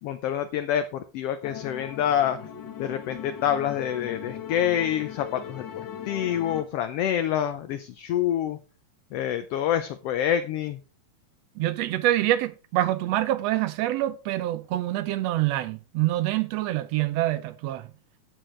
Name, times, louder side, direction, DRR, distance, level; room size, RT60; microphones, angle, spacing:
voice 1, 0.0-2.4 2.8-5.6 6.0-8.6 9.1-10.8, left 10 dB, 75° left, 1.4 m, -27 dB
sound 1, 1.4-6.6, left 8 dB, 45° left, 1.7 m, -39 dB
voice 2, 11.6-17.9, right 15 dB, 80° right, 1.5 m, -26 dB
15.5 x 6.2 x 3.2 m
omnidirectional pair, 3.4 m